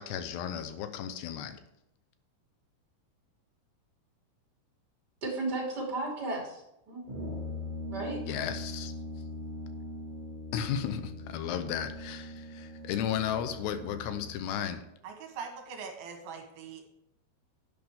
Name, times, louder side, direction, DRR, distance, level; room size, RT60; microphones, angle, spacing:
voice 1, 0.0-1.6 8.3-8.9 10.5-14.8, left 9 dB, 90° left, 10 dB, 2.9 m, -34 dB
voice 2, 5.2-7.0 7.9-8.2, right 2 dB, 25° right, -3 dB, 3.1 m, -34 dB
Brass instrument, 7.0-14.5, left 1 dB, 45° right, 0.6 m, -41 dB
voice 3, 15.0-16.8, right 5 dB, 70° right, 3 dB, 3.0 m, -42 dB
10.5 x 9.2 x 3.6 m, 0.82 s
omnidirectional pair, 4.7 m